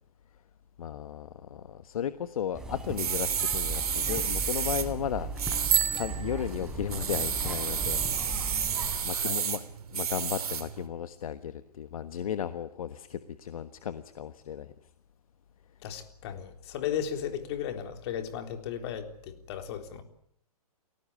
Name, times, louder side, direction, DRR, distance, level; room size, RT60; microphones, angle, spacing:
voice 1, 0.8-5.7 5.9-8.5 9.0-9.6 9.9-14.7, left 9 dB, 65° left, 11 dB, 1.4 m, -35 dB
sound 1, 2.5-9.0, right 2 dB, 5° right, 3.8 m, -38 dB
sound 2, 2.7-10.9, right 8 dB, 70° right, 3.2 m, -32 dB
Bicycle bell, 5.6-7.4, right 10 dB, 55° right, 4.7 m, -30 dB
voice 2, 9.1-9.4 15.8-20.0, left 9 dB, 45° left, 6 dB, 3.9 m, -35 dB
28.5 x 18.0 x 8.7 m, 0.71 s
hypercardioid pair, 140°, 20 cm